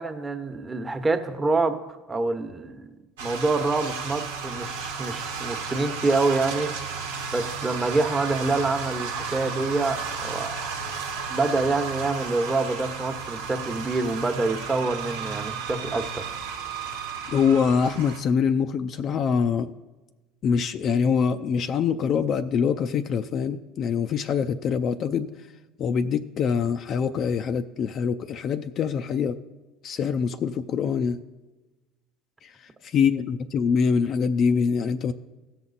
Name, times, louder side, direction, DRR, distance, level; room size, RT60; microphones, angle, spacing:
voice 1, 0.0-1.8 2.1-2.9 3.2-6.7 7.3-10.7 11.3-16.3, right 3 dB, 20° right, 7 dB, 1.1 m, -26 dB
sound 1, 3.2-18.2, right 5 dB, 85° right, 1.2 m, -33 dB
voice 2, 17.3-19.7 20.4-25.3 25.8-29.4 29.8-31.2 32.4-35.1, left 6 dB, 50° left, 8 dB, 0.5 m, -24 dB
16.0 x 6.0 x 4.1 m, 1.2 s
hypercardioid pair, 80°, 0 cm